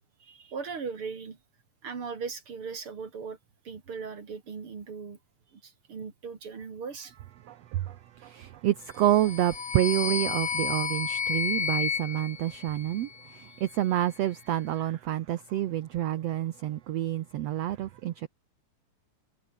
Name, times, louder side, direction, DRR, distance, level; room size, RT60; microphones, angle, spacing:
voice 1, 0.2-1.4 1.8-3.4 3.6-5.2 5.5-7.1, right 5 dB, 40° right, 3.2 m, -38 dB
voice 2, 7.5-18.3, right 13 dB, 70° right, 1.5 m, -28 dB
sound 1, 9.0-13.3, left 7 dB, 75° left, 0.8 m, -32 dB
omnidirectional pair, 4.0 m